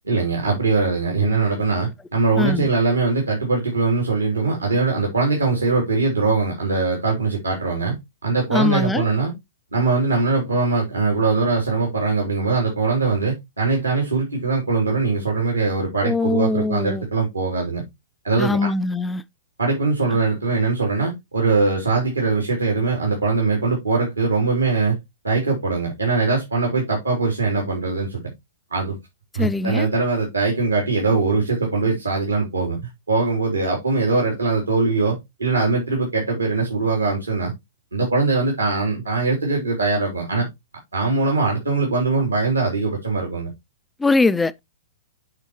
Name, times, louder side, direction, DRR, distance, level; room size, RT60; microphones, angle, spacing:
voice 1, 0.1-8.0 8.2-9.3 9.7-17.9 18.2-18.7 19.6-25.0 25.2-28.2 28.7-29.0 29.3-37.5 37.9-40.5 40.9-43.5, right 3 dB, 85° right, 3.5 m, -21 dB
voice 2, 2.4-2.7 8.5-9.0 16.0-17.0 18.4-19.2 29.3-29.9 44.0-44.6, left 3 dB, 10° left, 0.4 m, -21 dB
9.4 x 5.4 x 3.1 m
figure-of-eight pair, 110°, 0 cm